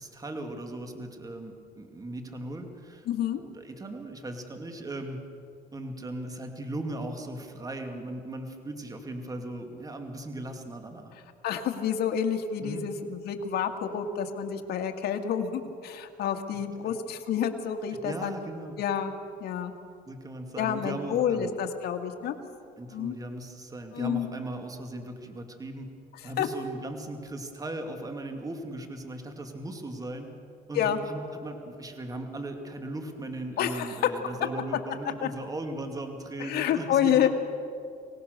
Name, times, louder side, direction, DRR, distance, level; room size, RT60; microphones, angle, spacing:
voice 1, 0.0-3.1 3.3-5.2 5.7-11.1 12.6-12.9 16.8-16.9 18.0-18.8 20.1-21.5 22.8-25.9 26.2-30.3 30.7-37.3, right 1 dB, 20° right, 4 dB, 2.4 m, -38 dB
voice 2, 3.1-3.4 11.4-18.3 18.8-19.1 19.4-19.7 20.6-22.3 22.9-23.2 23.9-24.3 26.4-26.5 30.8-31.0 33.6-34.1 35.2-35.3 36.4-37.3, left 9 dB, 70° left, 5 dB, 2.0 m, -28 dB
25.0 x 18.0 x 6.7 m, 2.4 s
cardioid pair, 110°, 17 cm